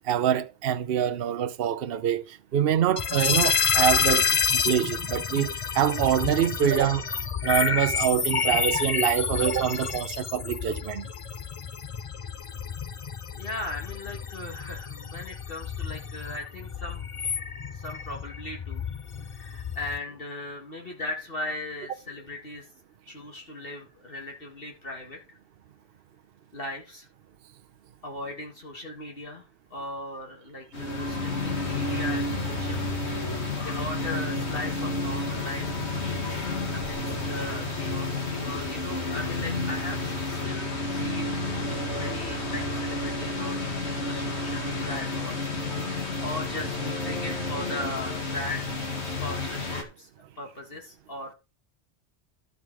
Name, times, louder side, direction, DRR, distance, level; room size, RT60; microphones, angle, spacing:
voice 1, 0.0-7.0 7.4-11.1, right 10 dB, 60° right, 0.9 m, -25 dB
sound 1, 3.0-20.0, left 6 dB, 40° left, 0.5 m, -29 dB
voice 2, 13.3-17.0 17.7-18.9 19.2-22.7 23.1-25.4 26.5-27.1 28.0-32.8 33.1-36.4 36.7-41.4 42.0-45.4 45.8-48.7 49.0-50.1 50.4-51.3, left 2 dB, 55° left, 2.1 m, -38 dB
sound 2, 30.7-49.8, left 2 dB, 75° left, 2.2 m, -30 dB
13.5 x 5.2 x 4.6 m
omnidirectional pair, 1.1 m